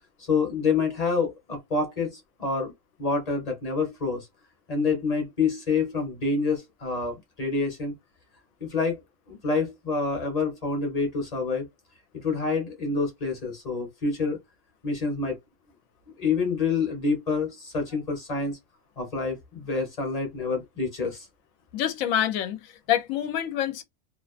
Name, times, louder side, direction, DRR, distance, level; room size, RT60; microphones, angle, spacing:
voice 1, 0.3-2.7 3.0-4.3 4.7-7.9 8.6-9.0 9.3-11.7 12.2-14.4 14.8-15.4 16.2-18.6 19.0-21.2, left 4 dB, 30° left, 0.9 m, -27 dB
voice 2, 21.7-23.8, left 10 dB, 75° left, 1.0 m, -27 dB
2.5 x 2.2 x 2.4 m
omnidirectional pair, 1.5 m